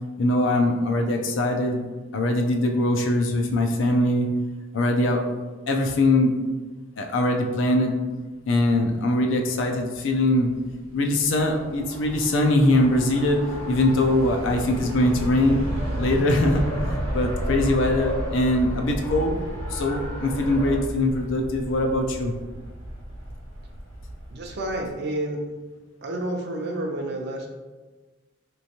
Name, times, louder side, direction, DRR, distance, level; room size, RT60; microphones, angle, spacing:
voice 1, 0.2-1.8 2.1-4.3 4.7-5.2 5.7-6.3 7.0-7.9 8.5-10.5 10.9-13.4 13.7-15.6 16.0-16.6 16.9-19.3 19.7-22.3, left 1 dB, 65° left, 3 dB, 0.4 m, -22 dB
sound 1, 9.9-24.9, right 1 dB, 85° right, 0.8 m, -33 dB
Race car auto racing, 11.6-20.9, left 1 dB, 30° left, 0.7 m, -38 dB
voice 2, 24.3-25.4 26.0-27.5, right 1 dB, 55° right, 1 dB, 0.5 m, -29 dB
3.3 x 3.0 x 2.7 m, 1.3 s
head